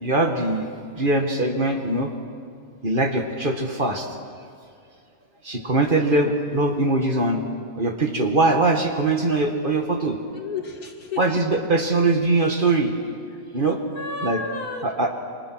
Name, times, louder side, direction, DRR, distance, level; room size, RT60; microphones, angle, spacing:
voice 1, 0.0-0.7 1.0-2.1 2.8-4.1 5.5-7.4 7.8-10.2 11.2-12.9 13.5-13.8 14.2-14.4 14.8-15.1, right 2 dB, 35° right, 4 dB, 2.0 m, -22 dB
voice 2, 10.3-11.4 13.3-13.4 13.9-14.9, left 3 dB, 90° left, 2 dB, 3.0 m, -32 dB
27.5 x 24.5 x 6.3 m, 2.3 s
omnidirectional pair, 1.5 m